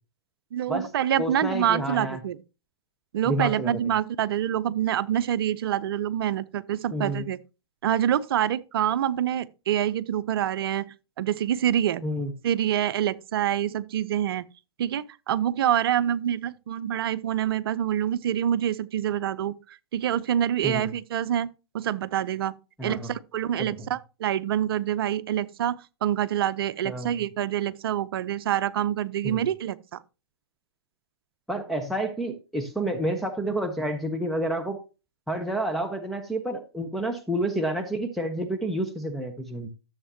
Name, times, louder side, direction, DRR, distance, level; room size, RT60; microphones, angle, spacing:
voice 1, 0.5-2.4 3.1-7.4 7.8-10.8 11.2-12.0 12.4-14.4 14.8-21.5 21.7-22.5 22.8-30.0, right 10 dB, 60° right, 0.7 m, -26 dB
voice 2, 1.2-2.2 3.3-3.7 6.9-7.3 12.0-12.3 20.6-20.9 22.8-23.1 23.6-23.9 26.8-27.2 29.2-29.5 31.5-34.8 35.3-39.7, right 1 dB, ahead, 1.1 m, -29 dB
13.5 x 7.4 x 2.8 m
hypercardioid pair, 120°, 14 cm